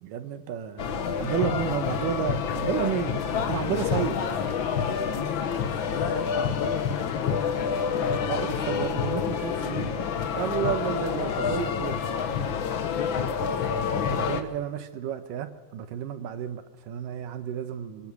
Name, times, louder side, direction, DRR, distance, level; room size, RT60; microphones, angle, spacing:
voice 1, 0.0-4.2 8.3-10.0 10.3-12.0 14.1-18.1, right 9 dB, 75° right, 10 dB, 2.7 m, -31 dB
sound 1, 0.8-14.4, left 7 dB, 90° left, 1.0 m, -28 dB
voice 2, 5.9-7.5 12.8-13.3, left 10 dB, 75° left, 9 dB, 1.7 m, -36 dB
25.0 x 21.0 x 7.2 m, 1.3 s
omnidirectional pair, 4.0 m